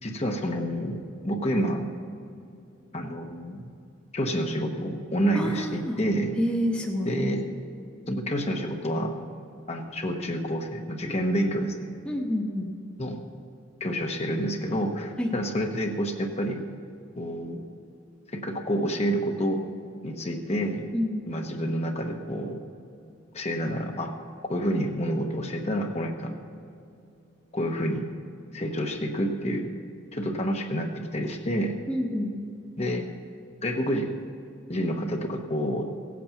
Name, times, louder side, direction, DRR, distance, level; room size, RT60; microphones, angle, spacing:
voice 1, 0.0-1.9 2.9-3.7 4.1-6.3 7.0-7.4 8.1-9.1 9.7-11.8 13.0-13.2 13.8-16.6 17.2-17.6 18.3-19.6 20.0-20.9 21.3-22.6 23.3-24.1 24.5-26.4 27.5-28.1 28.5-29.7 30.1-31.7 32.8-33.0 33.6-34.1 34.7-35.9, equal, 35° left, 3 dB, 1.0 m, -28 dB
voice 2, 5.3-6.0 6.4-7.2 12.1-12.7 15.2-15.3 20.9-21.2 31.9-32.3, left 1 dB, 5° left, 0 dB, 0.9 m, -28 dB
17.0 x 8.5 x 5.8 m, 2.6 s
head